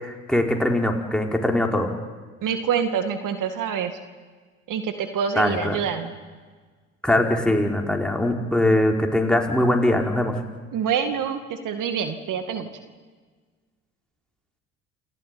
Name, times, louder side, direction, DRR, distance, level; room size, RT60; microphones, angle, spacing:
voice 1, 0.0-1.9 5.4-5.8 7.0-10.3, left 1 dB, ahead, 1 dB, 5.0 m, -21 dB
voice 2, 2.4-3.9 4.7-6.1 10.7-12.7, right 7 dB, 55° right, 7 dB, 2.3 m, -26 dB
29.0 x 17.0 x 9.5 m, 1.5 s
hypercardioid pair, 55°, 36 cm